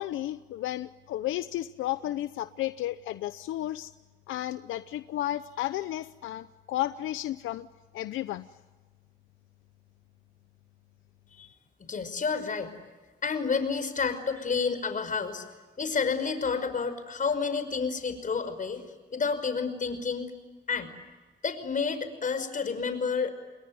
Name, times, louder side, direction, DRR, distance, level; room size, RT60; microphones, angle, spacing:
voice 1, 0.0-3.9 4.3-7.7 7.9-8.5, left 14 dB, 85° left, 13 dB, 0.8 m, -33 dB
voice 2, 11.8-12.7 13.2-15.4 15.8-18.8 19.1-20.3 20.7-20.9 21.4-23.3, left 5 dB, 40° left, 10 dB, 5.5 m, -30 dB
29.0 x 21.5 x 9.6 m, 1.3 s
cardioid pair, 90°, 20 cm